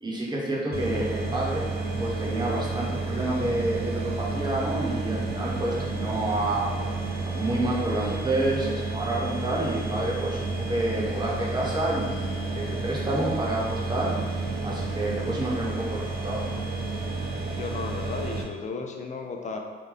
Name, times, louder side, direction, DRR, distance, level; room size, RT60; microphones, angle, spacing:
voice 1, 0.0-1.6 2.0-6.7 7.3-16.5, right 1 dB, 20° right, -4 dB, 1.0 m, -29 dB
sound 1, 0.7-18.4, right 3 dB, 50° right, 0.6 m, -31 dB
voice 2, 17.6-19.6, left 4 dB, 35° left, 3 dB, 0.5 m, -34 dB
3.3 x 2.2 x 3.7 m, 1.4 s
cardioid pair, 90°, 20 cm